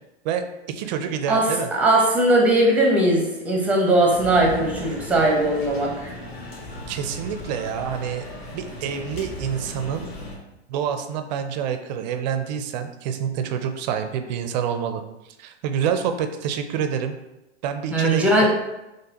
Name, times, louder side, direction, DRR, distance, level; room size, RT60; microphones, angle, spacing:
voice 1, 0.2-1.7 6.9-8.2 8.5-10.1 10.7-15.0 15.4-17.2 17.6-18.5, right 8 dB, 40° right, 8 dB, 0.4 m, -27 dB
voice 2, 1.3-6.1 17.9-18.5, right 1 dB, 5° right, -1 dB, 0.7 m, -19 dB
sound 1, 4.1-10.4, equal, 65° left, 1.5 m, -36 dB
3.9 x 3.2 x 2.8 m, 0.97 s
hypercardioid pair, 125°, 33 cm